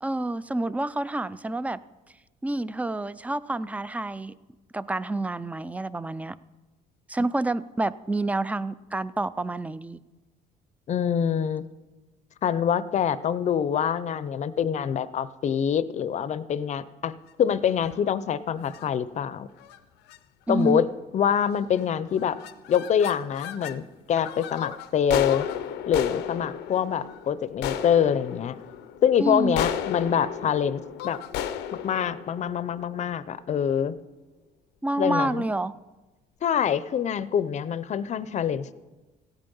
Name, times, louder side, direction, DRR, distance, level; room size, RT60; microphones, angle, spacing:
voice 1, 0.0-1.8 2.4-4.3 4.7-6.4 7.1-10.0 20.5-20.8 29.2-29.6 34.8-35.7, right 2 dB, 10° right, 17 dB, 0.3 m, -28 dB
voice 2, 10.9-11.6 12.4-19.5 20.5-20.9 21.1-22.4 22.7-25.5 25.9-28.6 29.0-31.2 31.8-34.0 35.0-35.4 36.4-38.7, left 8 dB, 45° left, 16 dB, 0.6 m, -25 dB
sound 1, 17.7-18.1 18.6-18.9 19.6-19.8 20.1-20.2 20.5-20.9 21.5-21.8 22.1-23.8 24.2-33.3, left 10 dB, 90° left, 0.6 m, -34 dB
16.0 x 9.0 x 5.5 m, 1.2 s
cardioid pair, 110°, 17 cm